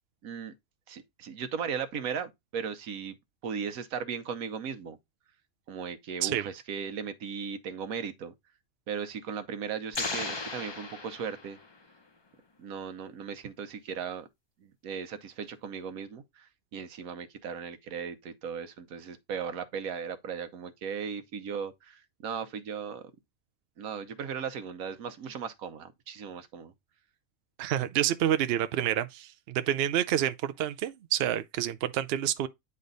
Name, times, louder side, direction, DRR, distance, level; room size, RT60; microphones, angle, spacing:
voice 1, 0.2-0.5 0.9-3.1 3.4-5.0 5.7-8.3 8.9-11.6 12.6-14.3 14.6-23.0 23.8-26.7, right 6 dB, 90° right, 1.3 m, -37 dB
sound 1, 9.9-11.8, left 3 dB, 30° left, 0.5 m, -36 dB
voice 2, 27.6-32.5, right 11 dB, 65° right, 0.6 m, -28 dB
9.6 x 3.3 x 3.9 m
omnidirectional pair, 1.5 m